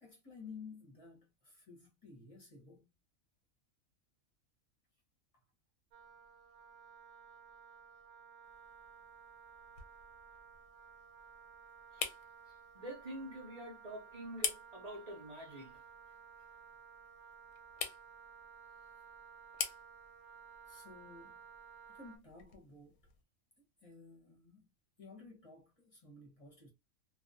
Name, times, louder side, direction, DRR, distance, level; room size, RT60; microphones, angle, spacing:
voice 1, 0.0-2.9 18.8-18.9 20.7-21.4 21.9-23.1 23.8-24.7 25.0-26.7, left 4 dB, 30° left, 0.7 m, -54 dB
Wind instrument woodwind instrument, 5.9-22.2, right 6 dB, 75° right, 1.0 m, -56 dB
sound 1, 8.4-23.2, left 7 dB, 70° left, 0.9 m, -47 dB
voice 2, 12.7-15.8, right 1 dB, 45° right, 0.5 m, -46 dB
2.3 x 2.3 x 2.5 m
omnidirectional pair, 1.5 m